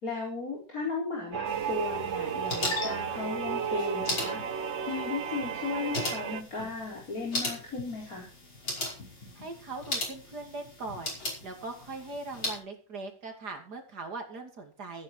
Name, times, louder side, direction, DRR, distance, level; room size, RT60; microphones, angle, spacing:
voice 1, 0.0-4.6 4.9-8.3, left 3 dB, 50° left, -2 dB, 4.8 m, -35 dB
sound 1, 1.3-6.4, right 7 dB, 45° right, 1.2 m, -33 dB
sound 2, 1.5-12.6, left 2 dB, 85° left, 6.3 m, -38 dB
voice 2, 9.3-15.0, right 3 dB, 60° right, 4 dB, 3.2 m, -40 dB
15.5 x 9.9 x 4.6 m, 0.37 s
omnidirectional pair, 2.0 m